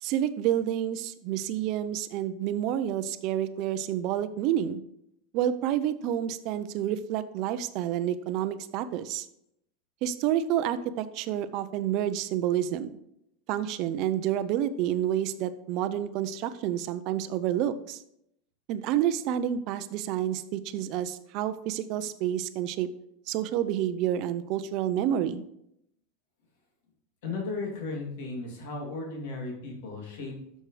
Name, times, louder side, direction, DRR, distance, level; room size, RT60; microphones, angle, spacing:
voice 1, 0.0-4.8 5.3-9.3 10.0-13.0 13.5-18.0 18.7-22.9 23.3-25.4, right 11 dB, 40° right, 12 dB, 0.5 m, -29 dB
voice 2, 27.2-30.6, left 3 dB, 70° left, 0 dB, 2.8 m, -35 dB
12.0 x 6.5 x 3.3 m, 0.76 s
supercardioid pair, 180°, 0 cm